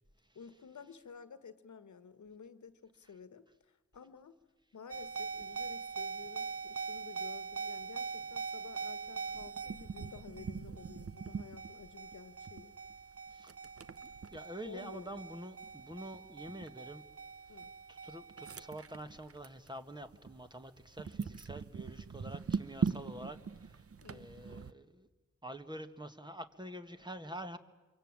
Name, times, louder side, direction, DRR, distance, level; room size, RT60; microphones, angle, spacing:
voice 1, 0.3-4.4 4.7-12.7 14.6-15.2 17.5-17.7 24.0-24.2, left 6 dB, 80° left, 13 dB, 1.4 m, -52 dB
sound 1, 4.9-19.7 20.0-20.4 20.9-24.7, right 5 dB, 50° right, 0.9 m, -41 dB
voice 2, 14.3-17.0 17.9-23.8 24.1-25.1 25.4-27.6, right 1 dB, 15° right, 8 dB, 1.8 m, -47 dB
26.0 x 23.5 x 9.0 m, 1.2 s
cardioid pair, 60°, 29 cm